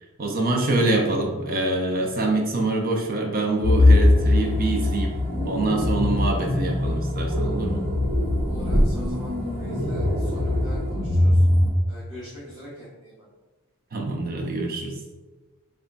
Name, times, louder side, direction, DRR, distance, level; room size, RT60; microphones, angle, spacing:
voice 1, 0.2-5.1 5.4-7.8 13.9-14.9, right 2 dB, 40° right, 2 dB, 0.6 m, -25 dB
sound 1, 3.6-11.7, left 1 dB, 65° right, 1.2 m, -21 dB
voice 2, 8.5-11.4 11.9-13.1, equal, 15° right, -10 dB, 0.8 m, -42 dB
3.4 x 2.2 x 3.9 m, 1.3 s
head